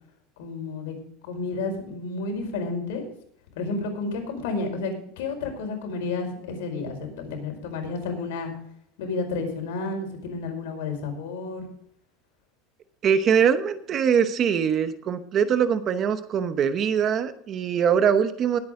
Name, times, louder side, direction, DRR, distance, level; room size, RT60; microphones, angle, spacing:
voice 1, 0.4-0.9 1.2-3.0 3.5-8.5 9.0-11.7, left 3 dB, 90° left, 4 dB, 4.9 m, -31 dB
voice 2, 13.0-18.6, right 7 dB, 30° right, 11 dB, 0.9 m, -22 dB
20.5 x 8.8 x 3.7 m, 0.68 s
cardioid pair, 170°, 0 cm